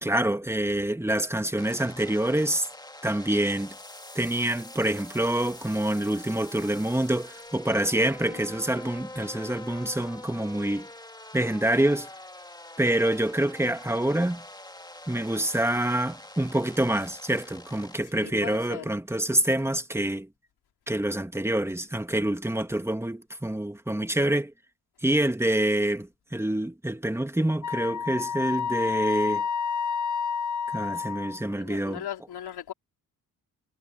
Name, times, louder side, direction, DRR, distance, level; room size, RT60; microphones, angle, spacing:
voice 1, 0.0-2.7 3.0-3.7 4.2-10.9 11.3-12.1 12.8-14.4 15.1-20.3 20.9-24.5 25.0-29.4 30.7-32.0, right 1 dB, 5° right, 2.0 m, -26 dB
sound 1, 1.6-18.0, left 1 dB, 10° left, 2.1 m, -45 dB
voice 2, 18.0-18.9 31.4-32.7, left 10 dB, 80° left, 4.0 m, -39 dB
Wind instrument woodwind instrument, 27.6-31.5, left 6 dB, 50° left, 1.3 m, -29 dB
supercardioid pair, 55°, 38 cm